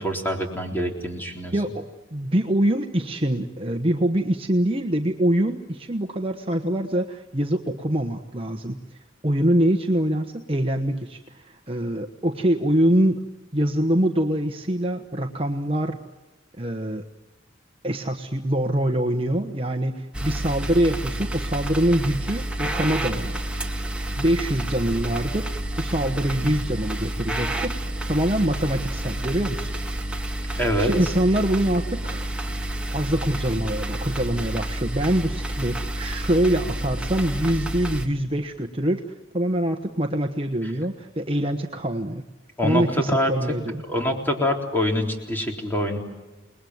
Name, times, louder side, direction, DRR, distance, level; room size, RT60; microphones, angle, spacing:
voice 1, 0.0-1.5 30.5-30.9 42.6-43.3 43.9-46.0, equal, 10° left, 1 dB, 3.8 m, -25 dB
voice 2, 1.5-13.2 13.5-16.0 16.6-17.0 17.8-23.6 24.2-25.5 25.8-29.7 30.8-32.3 32.9-39.0 39.3-42.2 42.6-43.8, right 1 dB, 25° right, 4 dB, 1.2 m, -24 dB
sound 1, 20.1-38.1, right 1 dB, 5° right, 1.8 m, -29 dB
29.0 x 20.5 x 9.5 m, 1.1 s
head